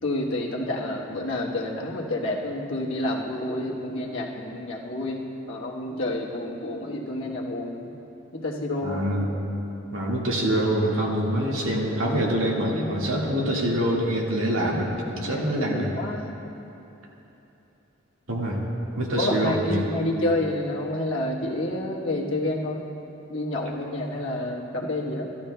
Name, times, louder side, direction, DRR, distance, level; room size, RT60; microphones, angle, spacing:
voice 1, 0.0-7.9 8.3-9.0 11.3-11.4 15.2-16.3 19.2-22.9 23.3-25.3, left 1 dB, 70° left, -2 dB, 1.2 m, -29 dB
voice 2, 8.8-9.3 9.9-15.9 18.3-18.7 19.0-20.1, equal, 80° right, -3 dB, 1.7 m, -25 dB
16.5 x 12.0 x 2.2 m, 3.0 s
head